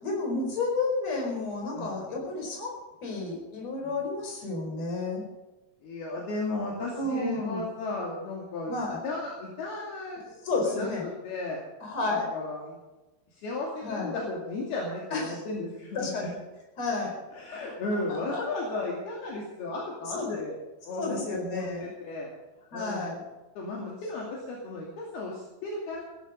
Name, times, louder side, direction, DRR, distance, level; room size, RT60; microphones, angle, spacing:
voice 1, 0.0-5.2 7.0-7.7 8.7-9.0 10.4-11.1 11.8-12.3 13.8-14.2 15.1-15.4 16.0-16.4 16.8-17.2 17.5-17.6 18.1-18.4 20.1-20.4 21.0-21.9 22.7-23.2, left 3 dB, 40° left, 0 dB, 5.6 m, -31 dB
voice 2, 5.8-8.7 9.0-10.3 10.6-11.6 12.0-12.8 13.3-16.3 17.3-20.5 20.8-22.3 22.7-23.1 23.6-26.0, left 2 dB, 65° left, -3 dB, 4.4 m, -35 dB
17.0 x 14.5 x 5.4 m, 1.1 s
omnidirectional pair, 5.0 m